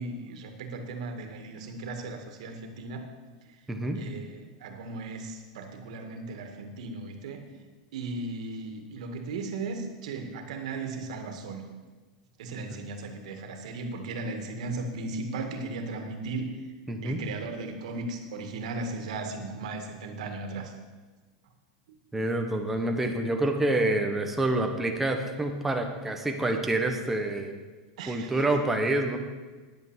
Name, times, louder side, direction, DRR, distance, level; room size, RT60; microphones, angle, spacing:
voice 1, 0.0-3.0 4.0-7.4 7.9-11.7 12.4-16.6 17.0-20.7 28.0-28.4, right 3 dB, 75° right, 6 dB, 2.0 m, -36 dB
voice 2, 3.7-4.0 16.9-17.2 22.1-27.6 28.1-29.2, right 2 dB, 5° right, 3 dB, 1.2 m, -27 dB
10.5 x 9.1 x 7.5 m, 1.4 s
supercardioid pair, 155°, 4 cm